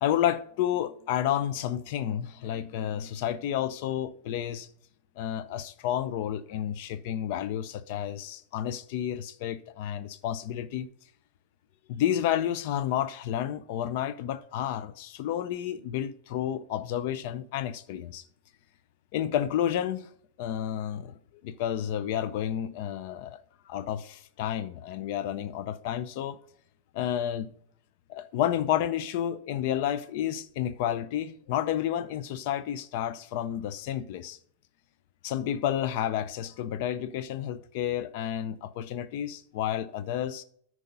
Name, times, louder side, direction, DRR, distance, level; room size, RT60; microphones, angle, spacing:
voice 1, 0.0-4.7 5.2-10.9 11.9-18.2 19.1-20.1 20.4-21.1 21.4-26.4 26.9-27.5 28.1-34.4 35.2-40.4, left 10 dB, 60° left, 0.5 m, -30 dB
9.3 x 4.8 x 5.4 m
hypercardioid pair, 115°, 0 cm